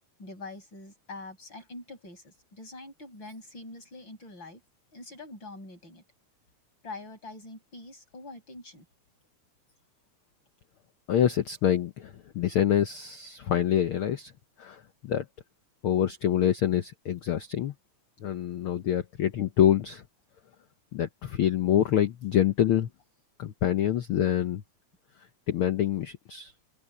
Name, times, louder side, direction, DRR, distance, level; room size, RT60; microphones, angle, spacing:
voice 1, 0.2-4.6 4.9-6.0 6.8-8.9, left 2 dB, 35° left, 7.5 m, -44 dB
voice 2, 11.1-14.3 14.6-15.3 15.8-17.7 18.2-20.0 20.9-22.9 23.4-24.6 25.5-26.5, left 10 dB, 90° left, 1.1 m, -26 dB
open air
omnidirectional pair, 3.6 m